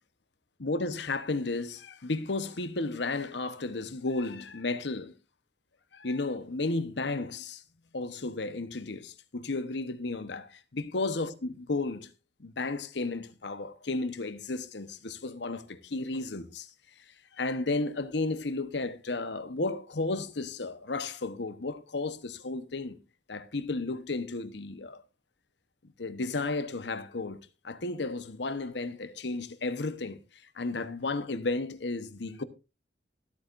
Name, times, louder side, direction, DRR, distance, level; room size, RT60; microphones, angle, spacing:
voice 1, 0.6-5.1 5.9-7.6 7.9-12.1 12.4-16.7 17.4-23.0 23.3-25.0 26.0-30.2 30.5-32.4, left 3 dB, 75° left, 1.0 m, -33 dB
23.5 x 8.4 x 2.5 m
head